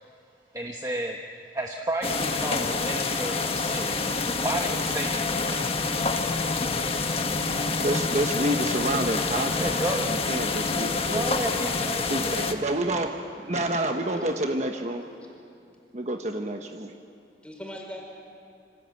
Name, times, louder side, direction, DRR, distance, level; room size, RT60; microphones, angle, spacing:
voice 1, 0.5-1.2 1.5-3.9 4.4-5.3 9.6-10.0 10.9-12.4, right 1 dB, 20° right, 1 dB, 1.1 m, -32 dB
sound 1, 2.0-12.5, left 3 dB, 35° left, 1.5 m, -27 dB
voice 2, 7.8-11.6 12.1-13.2 13.4-15.0 15.9-16.9, right 1 dB, 40° right, 4 dB, 1.2 m, -29 dB
voice 3, 14.1-14.6 17.4-18.0, equal, 5° left, 0 dB, 5.0 m, -40 dB
27.5 x 25.5 x 7.8 m, 2.5 s
head